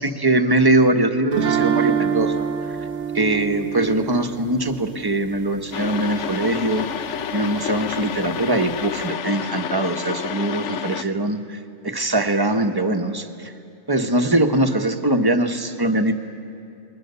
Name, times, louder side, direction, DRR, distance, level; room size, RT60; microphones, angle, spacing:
voice 1, 0.0-2.8 3.1-13.5 13.9-16.1, right 2 dB, 20° right, 6 dB, 1.1 m, -22 dB
sound 1, 1.3-6.2, right 7 dB, 65° right, 1.5 m, -26 dB
sound 2, 5.7-11.0, left 8 dB, 65° left, 1.0 m, -29 dB
30.0 x 21.5 x 6.9 m, 2.6 s
omnidirectional pair, 1.4 m